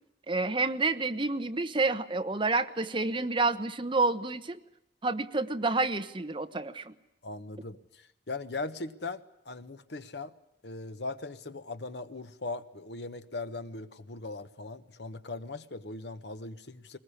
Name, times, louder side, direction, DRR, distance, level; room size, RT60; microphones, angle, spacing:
voice 1, 0.3-4.6 5.0-6.9, right 3 dB, 30° right, 10 dB, 1.0 m, -29 dB
voice 2, 7.2-10.3 10.6-17.0, left 3 dB, 70° left, 12 dB, 1.2 m, -39 dB
21.0 x 20.5 x 9.9 m, 0.81 s
head